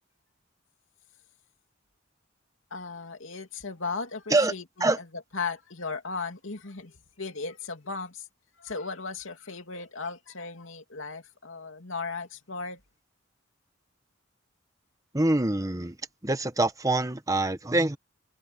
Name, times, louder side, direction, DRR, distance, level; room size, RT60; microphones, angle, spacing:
voice 1, 2.7-5.1 5.3-8.3 8.6-12.8, left 4 dB, 80° left, 2.8 m, -36 dB
voice 2, 15.1-15.9 16.2-18.0, right 2 dB, 15° right, 1.1 m, -25 dB
head